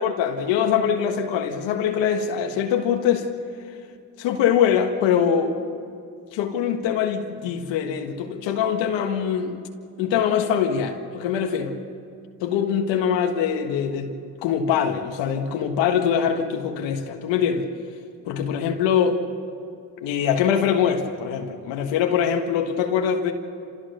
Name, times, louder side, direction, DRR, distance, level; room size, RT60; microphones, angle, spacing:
voice 1, 0.0-3.3 4.2-5.5 6.3-9.5 10.0-11.8 12.4-14.1 14.4-17.7 18.2-19.2 20.0-23.3, left 8 dB, 80° left, 1.6 m, -23 dB
30.0 x 15.5 x 6.8 m
supercardioid pair, 65°, 43 cm